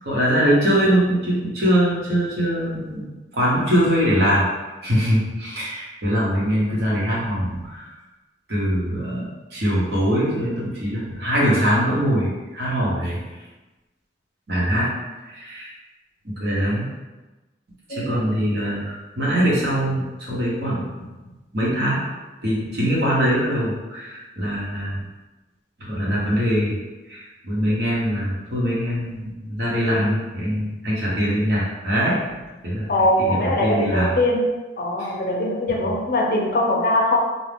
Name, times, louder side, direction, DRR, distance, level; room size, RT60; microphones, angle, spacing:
voice 1, 0.0-3.0 3.3-4.5 4.8-7.9 8.5-13.4 14.5-14.9 15.2-15.7 16.2-16.9 17.9-21.1 21.5-22.0 22.4-25.1 25.8-26.8 27.1-32.9 33.2-34.1 35.0-35.1 35.8-35.9, equal, 75° right, -6 dB, 1.0 m, -22 dB
voice 2, 32.9-34.5 34.8-37.2, left 1 dB, 55° left, 0 dB, 0.5 m, -21 dB
2.6 x 2.3 x 3.3 m, 1.1 s
head